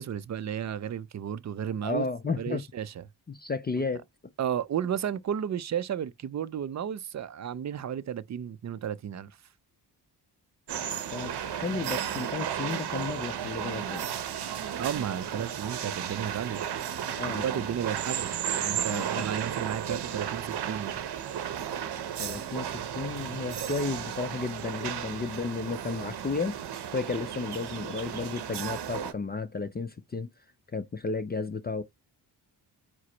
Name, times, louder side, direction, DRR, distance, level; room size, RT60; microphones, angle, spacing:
voice 1, 0.0-2.1 2.4-3.0 4.4-9.4 14.8-16.6 17.2-21.0, right 9 dB, 40° right, 0.4 m, -33 dB
voice 2, 1.8-2.6 3.3-4.0 11.1-14.1 17.2-17.6 18.9-19.3 22.2-26.6 26.9-30.3 30.7-31.8, left 4 dB, 25° left, 0.4 m, -33 dB
sound 1, 10.7-29.1, right 9 dB, 60° right, 0.8 m, -34 dB
4.7 x 2.0 x 4.3 m
cardioid pair, 75°, 44 cm